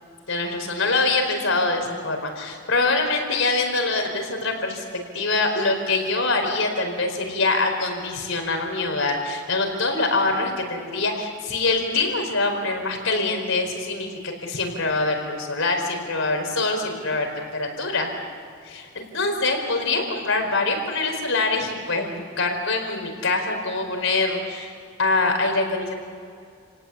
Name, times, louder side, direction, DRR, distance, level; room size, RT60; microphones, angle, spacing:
voice 1, 0.3-18.1 18.6-24.7 25.0-25.9, left 3 dB, 70° left, 4 dB, 4.7 m, -24 dB
30.0 x 18.5 x 8.6 m, 2.3 s
head